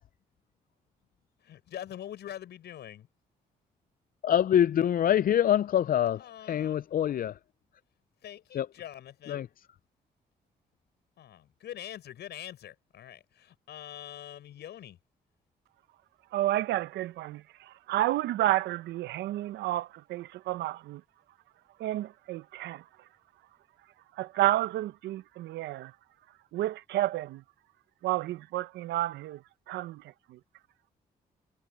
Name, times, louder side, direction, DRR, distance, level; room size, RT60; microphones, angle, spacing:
voice 1, 1.4-3.1 6.2-6.8 8.2-9.5 11.2-15.0, left 11 dB, 75° left, 6.8 m, -44 dB
voice 2, 4.2-6.2 6.5-7.3 8.5-8.7 9.3-9.5, left 10 dB, 55° left, 0.5 m, -25 dB
voice 3, 16.3-21.0 21.8-22.8 24.2-25.9 26.5-27.4 28.0-29.4 29.7-30.0 30.3-30.4, right 15 dB, 80° right, 1.0 m, -30 dB
supercardioid pair, 50°, 18 cm